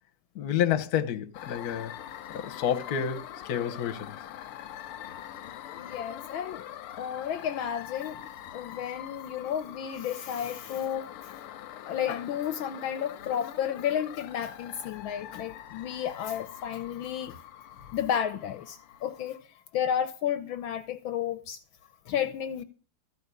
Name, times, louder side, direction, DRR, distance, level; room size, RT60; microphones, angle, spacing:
voice 1, 0.3-1.9 2.3-4.1, left 9 dB, 50° left, 1.3 m, -29 dB
sound 1, 1.3-19.3, left 11 dB, 90° left, 1.7 m, -44 dB
voice 2, 5.7-6.6 7.0-8.2 8.5-11.1 11.9-17.4 17.9-21.6 22.1-22.6, left 9 dB, 70° left, 1.4 m, -32 dB
14.5 x 5.1 x 8.2 m
omnidirectional pair, 2.4 m